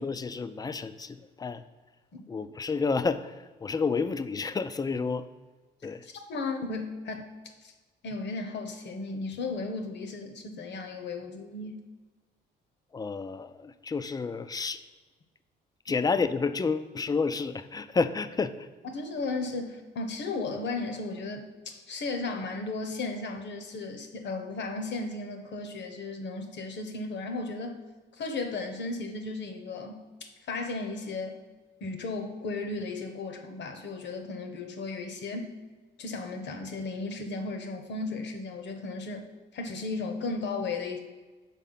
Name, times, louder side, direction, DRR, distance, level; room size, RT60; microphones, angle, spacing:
voice 1, 0.0-1.6 2.3-3.3 3.6-5.2 5.8-6.0 12.9-14.8 15.9-18.7, left 4 dB, 20° left, 12 dB, 0.3 m, -30 dB
voice 2, 6.0-7.3 7.6-7.7 8.0-11.8 18.9-27.8 28.1-31.4 31.8-35.6 36.0-41.0, left 3 dB, 60° left, 6 dB, 0.9 m, -35 dB
5.5 x 4.1 x 5.6 m, 1.3 s
cardioid pair, 90°, 20 cm